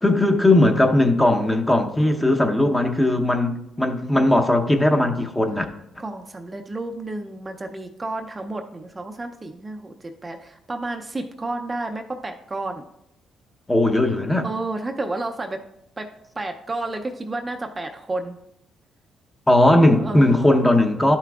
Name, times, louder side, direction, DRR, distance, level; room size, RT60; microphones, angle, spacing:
voice 1, 0.0-5.6 13.7-14.5 19.5-21.2, left 1 dB, 10° left, 0.8 m, -18 dB
voice 2, 6.0-12.8 14.4-15.6 16.0-16.1 16.4-18.4 19.9-20.7, right 2 dB, 25° right, 0.5 m, -31 dB
11.5 x 5.8 x 2.3 m
cardioid pair, 90°, 0 cm